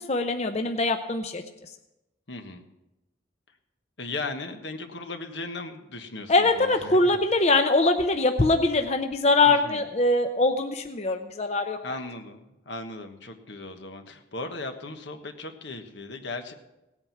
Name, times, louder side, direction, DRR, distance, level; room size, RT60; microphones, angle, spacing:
voice 1, 0.0-1.7 6.3-12.0, left 2 dB, 35° left, 6 dB, 0.7 m, -23 dB
voice 2, 2.3-2.6 4.0-7.2 9.4-9.8 11.8-16.5, left 2 dB, 75° left, 6 dB, 1.3 m, -37 dB
17.5 x 8.8 x 5.9 m, 0.95 s
head